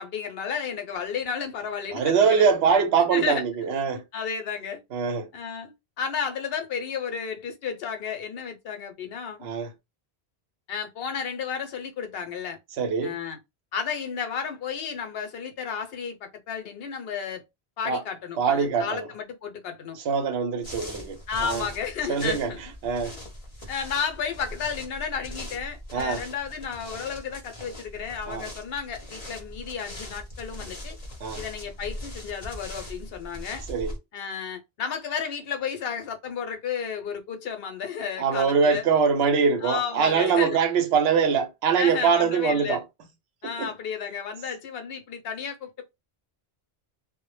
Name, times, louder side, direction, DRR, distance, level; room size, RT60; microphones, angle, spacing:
voice 1, 0.0-2.5 3.1-3.4 3.9-4.8 5.3-9.5 10.7-12.6 13.0-13.4 13.7-17.4 17.8-20.0 21.3-22.7 23.7-31.0 31.4-33.6 34.1-38.8 39.6-40.6 41.8-42.8 43.4-45.8, left 6 dB, 70° left, 0.8 m, -32 dB
voice 2, 1.9-4.0 4.9-5.3 9.4-9.7 12.8-13.2 17.9-18.0 18.4-19.1 20.1-21.6 22.1-22.5 22.8-23.1 25.9-26.2 28.3-28.4 31.2-31.4 33.7-33.9 38.2-42.8 43.6-43.7, right 6 dB, 75° right, 0.9 m, -23 dB
sound 1, 20.6-34.0, left 1 dB, 35° left, 0.7 m, -41 dB
2.1 x 2.0 x 3.1 m
omnidirectional pair, 1.1 m